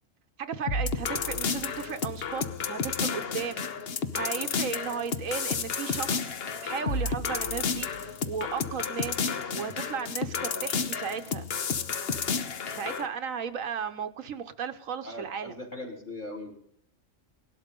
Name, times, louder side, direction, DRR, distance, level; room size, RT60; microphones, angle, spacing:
voice 1, 0.4-3.7 4.1-6.4 6.6-9.3 9.5-11.5 12.6-15.6, right 7 dB, 80° right, 9 dB, 1.4 m, -35 dB
sound 1, 0.7-13.1, left 5 dB, 50° left, 1.1 m, -31 dB
voice 2, 15.0-16.5, left 1 dB, 35° left, 3 dB, 3.6 m, -40 dB
18.5 x 12.5 x 5.3 m, 0.67 s
omnidirectional pair, 1.4 m